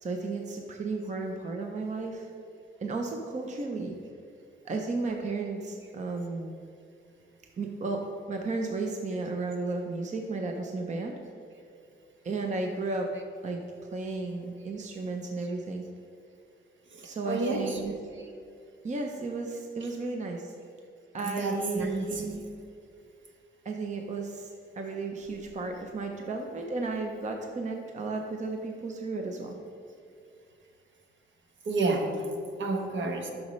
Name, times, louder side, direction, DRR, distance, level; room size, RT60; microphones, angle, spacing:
voice 1, 0.0-2.3 2.8-3.9 4.6-6.6 7.6-11.2 12.2-13.1 13.4-13.6 13.9-15.8 17.0-17.9 18.8-20.5 21.1-22.4 23.6-29.6, right 3 dB, 35° right, 2 dB, 0.7 m, -33 dB
voice 2, 16.9-17.8 21.2-22.2 31.7-32.1 32.6-33.3, right 3 dB, 70° right, 2 dB, 1.1 m, -30 dB
12.5 x 6.2 x 3.1 m, 2.3 s
wide cardioid pair, 175°, 20 cm